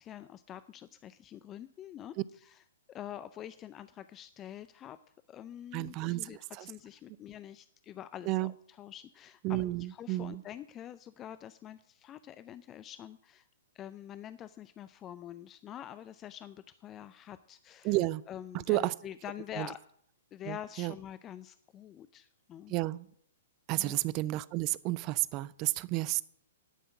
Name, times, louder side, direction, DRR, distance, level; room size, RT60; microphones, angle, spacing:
voice 1, 0.0-5.0 5.3-13.5 13.7-18.0 18.3-19.8 20.3-22.7 23.7-24.0, left 11 dB, 25° left, 13 dB, 0.5 m, -46 dB
voice 2, 5.7-6.6 8.3-8.5 9.4-10.4 17.8-18.2 18.7-18.9 19.6-19.7 20.5-20.9 22.7-23.1 23.7-26.2, right 18 dB, 35° right, 21 dB, 0.4 m, -31 dB
11.5 x 5.7 x 8.4 m, 0.65 s
figure-of-eight pair, 115°, 0 cm